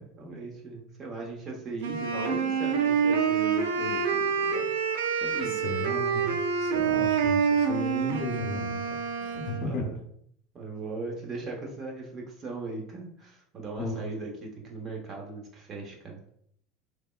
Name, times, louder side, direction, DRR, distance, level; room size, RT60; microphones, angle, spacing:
voice 1, 0.0-4.9 5.2-5.7 6.8-7.1 9.2-9.3 9.6-10.0 10.5-16.3, right 3 dB, 40° right, 0 dB, 0.9 m, -39 dB
Wind instrument woodwind instrument, 1.8-9.7, right 6 dB, 85° right, 0.3 m, -27 dB
voice 2, 5.4-9.9 13.8-14.0, left 2 dB, 65° left, 3 dB, 0.7 m, -35 dB
3.3 x 2.0 x 2.3 m, 0.66 s
supercardioid pair, 95°, 0 cm